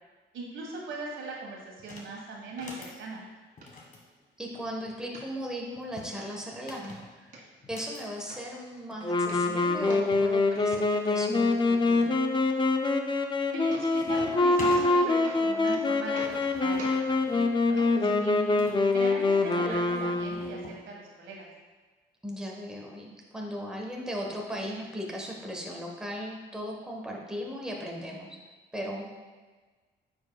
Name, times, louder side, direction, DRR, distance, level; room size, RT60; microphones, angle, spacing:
voice 1, 0.3-3.2 13.5-17.0 17.3-18.3 18.9-21.5, right 3 dB, 80° right, -1 dB, 1.6 m, -39 dB
sound 1, 1.8-2.1 2.5-3.0 3.6-5.0 5.8-8.0 9.1-9.2 9.4-9.5 10.1-10.9 11.5-12.0 12.5-12.9 13.2-13.6 13.9-14.9 15.8-18.8 19.7-20.8, left 3 dB, 45° left, 1.6 m, -46 dB
sound 2, 2.6-2.7 3.1-3.2 3.6-3.7 4.2-4.6 5.1-5.7 6.2-6.3 6.7-7.4 8.0-8.1 8.3-9.0 9.2-10.3 10.5-11.1 13.1-13.2 13.5-14.3 14.6-14.9 15.2-15.8 16.1-16.5 16.8-17.0 17.8-17.9 18.8-18.9, right 2 dB, 45° right, 1.9 m, -45 dB
voice 2, 4.4-7.3 7.7-12.1 18.0-18.8 22.2-28.4 28.7-29.1, equal, 5° right, -1 dB, 1.2 m, -37 dB
Wind instrument woodwind instrument, 9.0-20.7, left 3 dB, 25° left, 0.5 m, -25 dB
9.1 x 5.4 x 2.3 m, 1.3 s
cardioid pair, 90°, 20 cm